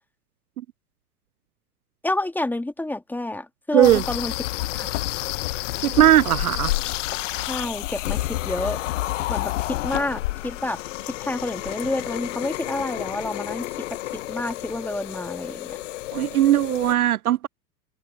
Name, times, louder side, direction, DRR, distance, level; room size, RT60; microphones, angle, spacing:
voice 1, 2.0-4.3 4.7-4.9 7.5-8.8 9.3-10.8 11.1-14.0 14.3-15.8, left 2 dB, 5° left, 2.7 m, -29 dB
sound 1, 3.8-16.9, left 17 dB, 45° left, 1.5 m, -30 dB
voice 2, 5.8-6.7 16.1-17.5, right 13 dB, 60° right, 0.6 m, -18 dB
figure-of-eight pair, 100°, 49 cm